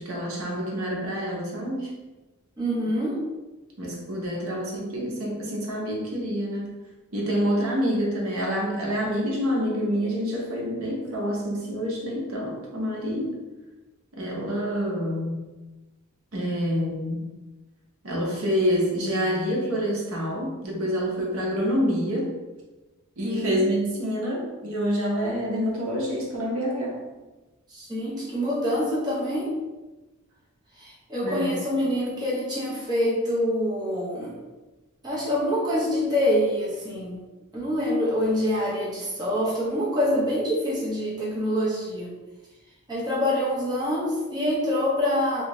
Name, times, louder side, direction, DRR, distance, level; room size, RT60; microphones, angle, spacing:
voice 1, 0.0-1.9 3.8-6.7 7.1-13.4 14.2-15.4 16.3-17.2 18.0-22.3 23.2-27.0 31.2-31.6, equal, 70° right, -2 dB, 0.9 m, -27 dB
voice 2, 2.6-3.2 23.2-23.6 27.7-29.5 30.8-34.4 35.0-37.2 37.5-42.1 42.9-45.4, equal, 20° right, -6 dB, 0.7 m, -26 dB
3.2 x 2.7 x 3.1 m, 1.1 s
head